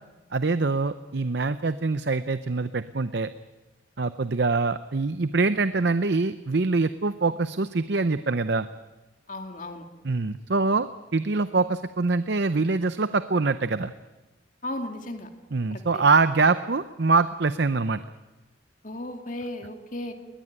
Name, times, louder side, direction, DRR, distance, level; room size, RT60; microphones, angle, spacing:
voice 1, 0.3-3.3 4.0-8.7 10.0-13.9 15.5-18.0, right 3 dB, 55° right, 12 dB, 0.7 m, -24 dB
voice 2, 9.3-9.9 14.6-15.3 15.7-16.0 18.8-20.1, left 1 dB, 40° left, 5 dB, 2.3 m, -35 dB
21.0 x 20.5 x 8.9 m, 1.1 s
head